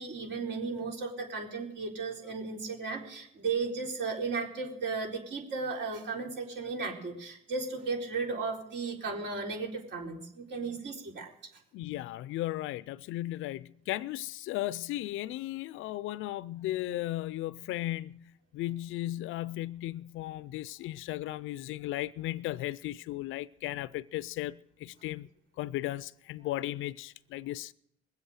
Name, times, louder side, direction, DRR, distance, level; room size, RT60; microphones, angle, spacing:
voice 1, 0.0-11.3, right 4 dB, 60° right, 4.2 m, -35 dB
voice 2, 11.7-25.3 25.6-27.7, left 15 dB, 75° left, 0.4 m, -36 dB
21.0 x 8.0 x 6.5 m
cardioid pair, 90°, 21 cm